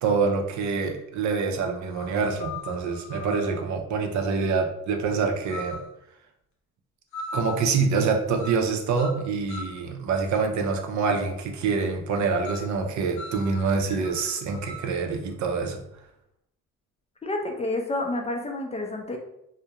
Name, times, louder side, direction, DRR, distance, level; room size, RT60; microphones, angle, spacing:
voice 1, 0.0-5.8 7.3-15.8, right 5 dB, 70° right, 4 dB, 0.6 m, -26 dB
sound 1, 0.9-1.0 1.9-3.5 5.5-5.9 7.1-7.7 8.3-8.7 9.0-9.8 12.4-12.7 13.2-14.9, left 3 dB, 80° left, 0.6 m, -39 dB
voice 2, 17.2-19.2, left 2 dB, 20° left, 2 dB, 0.4 m, -29 dB
2.3 x 2.1 x 2.8 m, 0.79 s
cardioid pair, 90°, 30 cm